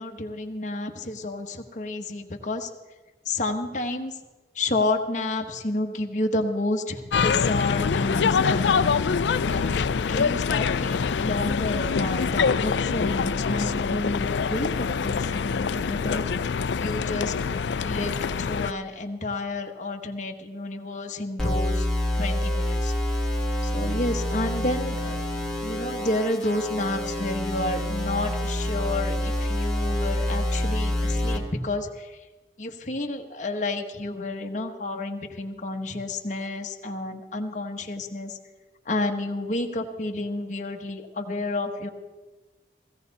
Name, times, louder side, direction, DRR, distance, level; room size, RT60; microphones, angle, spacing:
voice 1, 0.0-2.7 3.2-4.1 4.5-8.8 9.4-17.3 17.8-21.9 22.1-22.9 23.6-25.2 25.6-32.2 32.6-38.4 38.8-41.9, left 2 dB, 45° left, 3 dB, 1.2 m, -30 dB
sound 1, 7.1-18.7, left 5 dB, 90° left, 0.4 m, -25 dB
sound 2, 21.4-31.4, left 1 dB, 5° left, 1.7 m, -27 dB
17.0 x 16.0 x 4.1 m, 1.2 s
head